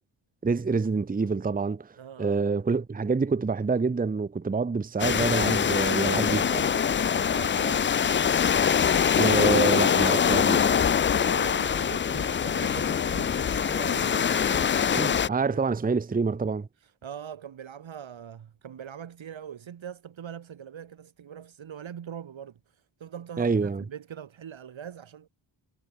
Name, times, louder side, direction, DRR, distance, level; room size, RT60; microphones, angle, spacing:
voice 1, 0.4-1.9 2.2-6.4 9.2-10.6 14.9-16.7 23.4-23.8, right 4 dB, 20° right, 0.8 m, -26 dB
voice 2, 2.0-2.4 6.0-8.0 10.0-15.0 15.3-15.7 16.8-25.3, right 8 dB, 75° right, 3.1 m, -42 dB
sound 1, 5.0-15.3, left 7 dB, 25° left, 0.4 m, -24 dB
cardioid pair, 65°, 47 cm